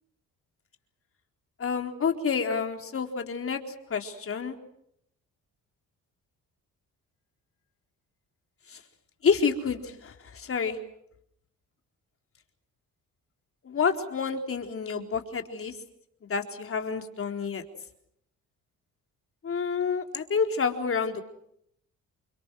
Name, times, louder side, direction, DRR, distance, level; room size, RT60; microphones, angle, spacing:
voice 1, 1.6-3.6 3.9-4.6 8.7-8.8 9.2-10.8 13.6-15.7 16.3-17.6 19.4-21.2, left 5 dB, 45° left, 5 dB, 4.2 m, -28 dB
29.0 x 25.0 x 6.2 m, 0.73 s
cardioid pair, 90°, 30 cm